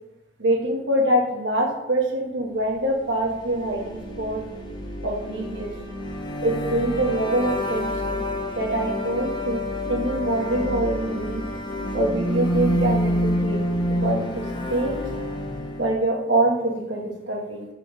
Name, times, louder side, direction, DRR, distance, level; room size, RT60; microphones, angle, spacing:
voice 1, 0.4-4.4 5.0-5.7 6.4-8.2 8.5-9.6 9.9-11.4 11.9-13.6 14.0-14.2 14.7-15.0 15.8-17.7, right 1 dB, 85° right, -1 dB, 1.4 m, -24 dB
sound 1, 3.0-16.0, left 1 dB, 25° left, 0.8 m, -28 dB
6.1 x 3.3 x 5.2 m, 0.92 s
head